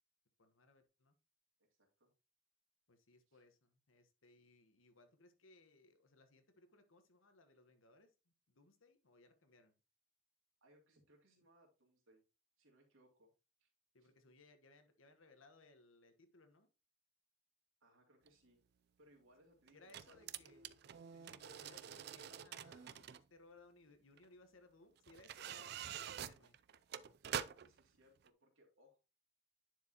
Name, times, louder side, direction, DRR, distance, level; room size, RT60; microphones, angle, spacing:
voice 1, 0.4-1.1 2.9-8.1 8.5-9.8 13.9-16.7 19.7-26.6, left 3 dB, 80° left, 1.2 m, -65 dB
voice 2, 1.8-2.1 3.3-3.4 10.6-12.2 12.6-13.3 13.6-13.7 14.0-14.1 17.8-18.6 19.0-20.2 27.2-29.0, equal, 80° right, 2.5 m, -69 dB
sound 1, 18.3-18.4 19.7-23.2 24.2-24.3 25.1-27.8 28.3-28.4, right 9 dB, 50° right, 0.3 m, -47 dB
10.0 x 4.8 x 2.8 m
head